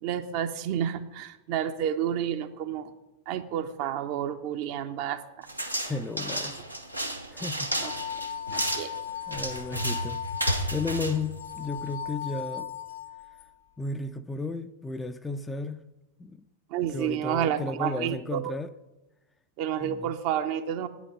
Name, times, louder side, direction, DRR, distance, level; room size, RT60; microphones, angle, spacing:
voice 1, 0.0-2.9 3.3-5.5 6.4-6.5 7.8-7.9 8.5-8.9 16.7-18.5 19.6-20.9, right 9 dB, 45° right, 0.8 m, -30 dB
sound 1, 5.5-12.0, right 1 dB, 90° right, 1.0 m, -32 dB
voice 2, 5.8-6.6 7.3-7.7 9.3-10.2 10.7-12.7 13.8-15.8 16.2-16.4 16.9-18.7 19.8-20.1, left 3 dB, 10° left, 0.5 m, -33 dB
sound 2, 7.6-13.5, left 9 dB, 65° left, 0.9 m, -38 dB
9.2 x 6.2 x 7.4 m
figure-of-eight pair, 90°, 0 cm